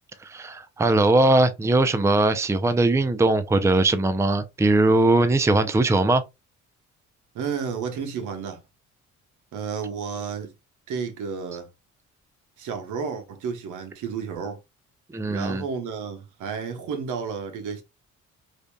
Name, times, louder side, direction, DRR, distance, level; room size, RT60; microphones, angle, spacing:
voice 1, 0.2-6.2 15.1-15.6, right 2 dB, 10° right, 0.5 m, -20 dB
voice 2, 7.3-8.6 9.5-10.5 10.9-11.7 12.6-14.6 15.3-17.8, right 6 dB, 80° right, 1.1 m, -31 dB
4.9 x 2.7 x 2.2 m
cardioid pair, 90°, 30 cm